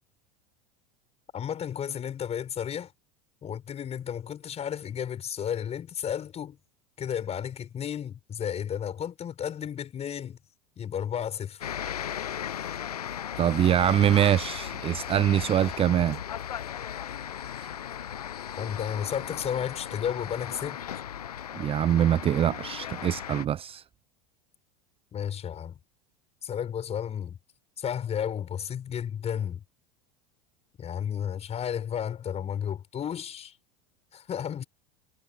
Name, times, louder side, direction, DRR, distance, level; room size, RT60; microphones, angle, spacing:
voice 1, 1.3-2.9 3.4-6.6 7.0-10.4 10.8-11.8 18.6-20.8 25.1-25.8 26.4-27.4 27.8-29.6 30.8-33.6 34.1-34.6, left 9 dB, 35° left, 7.1 m, -33 dB
sound 1, 11.6-23.5, left 9 dB, 80° left, 0.8 m, -36 dB
voice 2, 13.4-16.2 21.6-23.8, right 10 dB, 30° right, 0.6 m, -24 dB
figure-of-eight pair, 80°, 19 cm